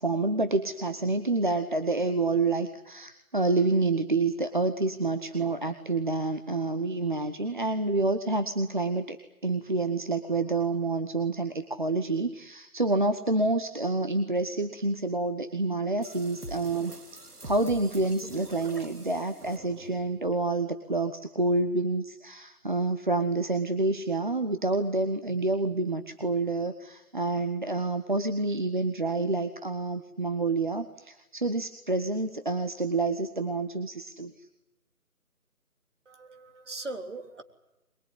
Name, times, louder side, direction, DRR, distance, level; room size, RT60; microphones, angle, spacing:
voice 1, 0.0-9.2 9.4-16.9 17.4-34.5, right 2 dB, 35° right, 8 dB, 1.1 m, -28 dB
sound 1, 16.0-20.2, right 2 dB, 90° right, 2.4 m, -44 dB
voice 2, 36.1-37.4, right 2 dB, 50° right, 5 dB, 3.6 m, -40 dB
22.5 x 22.0 x 9.9 m, 0.92 s
figure-of-eight pair, 160°, 45 cm